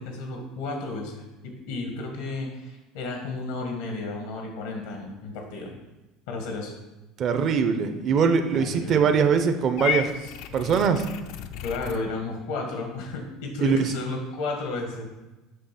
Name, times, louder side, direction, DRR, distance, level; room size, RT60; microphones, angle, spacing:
voice 1, 0.0-5.7 6.3-6.7 8.5-9.0 10.1-10.3 11.6-15.1, left 3 dB, 90° left, 2 dB, 1.4 m, -33 dB
voice 2, 7.2-10.1 10.5-11.0 13.6-13.9, right 6 dB, 40° right, 8 dB, 0.6 m, -22 dB
Purr / Meow, 9.8-12.0, left 10 dB, 70° left, 0.5 m, -32 dB
7.6 x 3.3 x 5.8 m, 1.1 s
cardioid pair, 135°, 0 cm